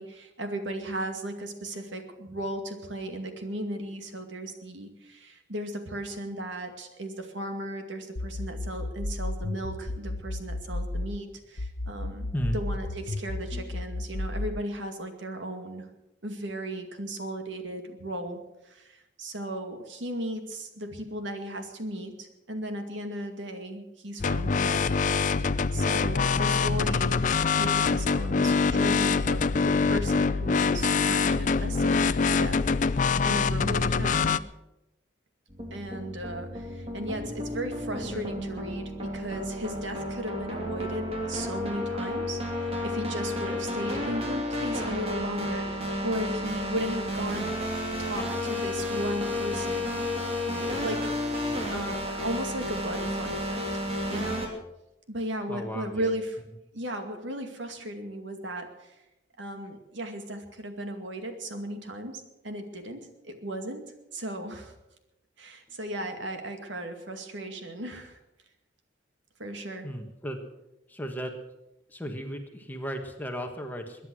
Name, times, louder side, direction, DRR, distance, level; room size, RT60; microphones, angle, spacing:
voice 1, 0.0-12.3 12.5-15.9 16.2-24.9 25.4-27.2 27.5-34.4 35.7-47.6 48.0-51.1 51.7-53.6 54.1-54.5 55.1-56.4 56.7-59.0 59.4-63.8 64.1-64.7 65.4-68.2 69.4-69.9, right 1 dB, 75° right, 6 dB, 2.3 m, -36 dB
sound 1, 8.2-11.2 11.6-14.6, left 2 dB, 85° left, 0.9 m, -33 dB
sound 2, 24.2-34.4, left 5 dB, 40° left, 0.4 m, -24 dB
sound 3, 35.5-54.5, left 1 dB, 30° right, 2.8 m, -32 dB
voice 2, 55.5-56.1 69.8-70.4 70.9-71.3 71.9-74.1, equal, 10° left, 4 dB, 1.5 m, -35 dB
22.0 x 10.0 x 6.3 m, 0.93 s
head